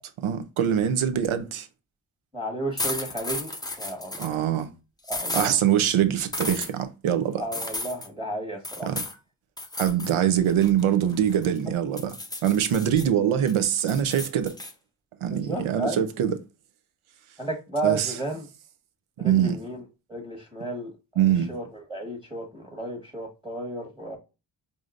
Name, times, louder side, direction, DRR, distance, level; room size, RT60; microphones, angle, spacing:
voice 1, 0.2-1.7 4.2-4.7 5.3-7.4 8.8-9.0 9.8-12.2 12.4-14.6 15.2-16.4 17.8-18.1 19.2-19.6 21.2-21.5, right 9 dB, 85° right, 0.6 m, -23 dB
voice 2, 2.3-3.5 3.8-4.4 5.1-5.6 7.4-8.9 15.3-16.1 17.4-18.4 19.2-19.8 20.1-20.9 21.5-24.2, right 2 dB, 10° right, 1.2 m, -32 dB
sound 1, 2.8-4.3 5.1-5.5 6.3-6.7 7.5-8.1 8.6-9.2 9.6-10.1 10.5-11.6 12.0-13.0 13.5-14.7, left 2 dB, 10° left, 0.5 m, -33 dB
4.8 x 2.7 x 2.4 m
wide cardioid pair, 85°, 48 cm